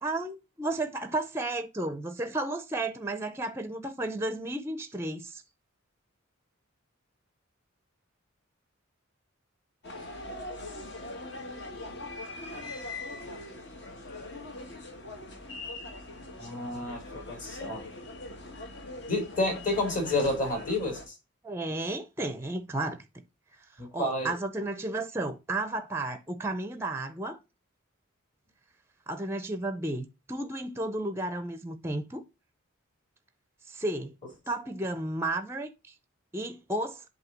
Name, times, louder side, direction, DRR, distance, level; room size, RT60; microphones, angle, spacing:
voice 1, 0.0-5.4 21.4-23.2 23.9-27.4 29.1-32.2 33.7-34.1 34.5-35.7 36.3-37.0, right 2 dB, 10° right, 0.5 m, -33 dB
sound 1, 9.8-21.1, left 2 dB, 55° left, 1.4 m, -41 dB
voice 2, 16.4-17.8 19.1-21.1 23.8-24.3, left 2 dB, 40° left, 2.7 m, -30 dB
8.0 x 2.8 x 5.8 m
head